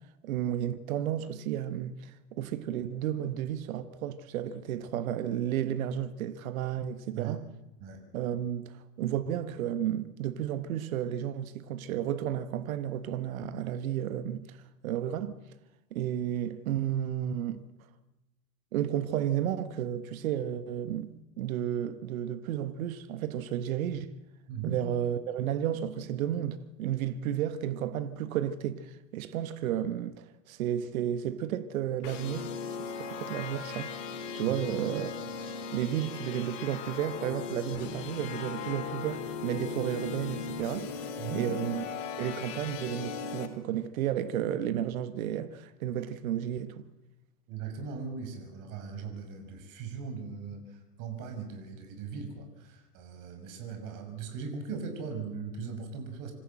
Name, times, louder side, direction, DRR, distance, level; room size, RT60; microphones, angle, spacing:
voice 1, 0.2-7.4 8.1-14.6 14.8-15.3 15.9-17.6 18.7-21.1 21.4-24.1 24.6-32.5 32.8-33.9 34.3-35.1 35.4-41.0 41.3-41.8 42.2-46.8, right 10 dB, 60° right, 1.6 m, -32 dB
voice 2, 24.5-24.8 34.5-34.6 41.2-41.5 47.5-56.3, right 5 dB, 40° right, 5.9 m, -39 dB
sound 1, 32.0-43.5, left 6 dB, 55° left, 3.2 m, -38 dB
26.5 x 14.0 x 7.8 m
hypercardioid pair, 110°, 46 cm